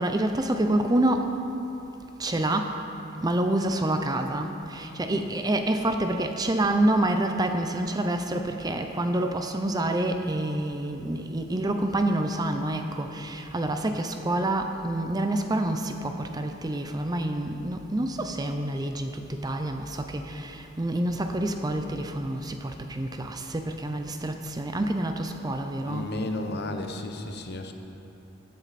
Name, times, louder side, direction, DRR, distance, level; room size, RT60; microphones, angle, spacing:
voice 1, 0.0-1.3 2.2-2.7 3.2-26.1, right 1 dB, 20° right, 6 dB, 0.5 m, -27 dB
voice 2, 25.8-27.7, left 2 dB, 50° left, 5 dB, 0.9 m, -33 dB
15.5 x 10.0 x 4.2 m, 3.0 s
head